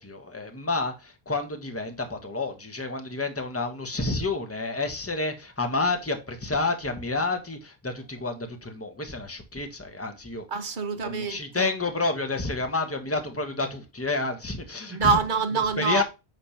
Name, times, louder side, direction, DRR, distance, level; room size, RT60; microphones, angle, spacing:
voice 1, 0.0-10.5 11.0-15.2 15.8-16.0, left 3 dB, 15° left, 1.3 m, -29 dB
voice 2, 10.5-11.7 14.9-16.0, right 5 dB, 55° right, 1.1 m, -26 dB
8.8 x 3.3 x 5.7 m
omnidirectional pair, 1.0 m